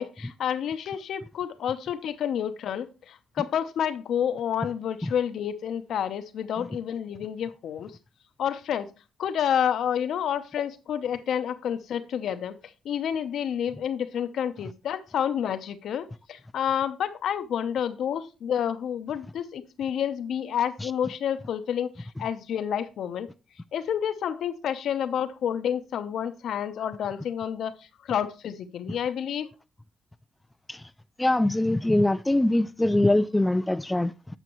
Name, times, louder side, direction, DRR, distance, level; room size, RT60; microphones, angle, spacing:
voice 1, 0.0-7.9 8.4-8.9 9.2-12.5 12.8-23.3 23.7-27.7 28.0-29.5, left 9 dB, 70° left, 0.8 m, -29 dB
voice 2, 31.2-34.1, left 1 dB, 10° left, 0.3 m, -23 dB
8.9 x 6.9 x 3.0 m
cardioid pair, 90°, 0 cm